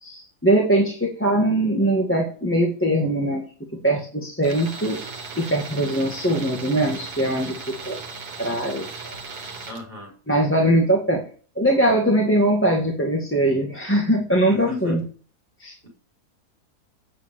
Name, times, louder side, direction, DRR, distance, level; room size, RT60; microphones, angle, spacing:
voice 1, 0.0-3.4 3.8-5.0 5.4-7.6 7.9-8.0 8.4-9.1 10.3-11.3 11.6-15.0 15.6-15.7, right 1 dB, 10° left, -1 dB, 2.0 m, -21 dB
Tools, 4.4-9.8, right 4 dB, 75° right, 2.1 m, -37 dB
voice 2, 9.7-10.1 14.5-15.0 15.8-15.9, left 2 dB, 35° right, -1 dB, 5.5 m, -33 dB
9.1 x 8.4 x 8.7 m, 0.43 s
omnidirectional pair, 1.7 m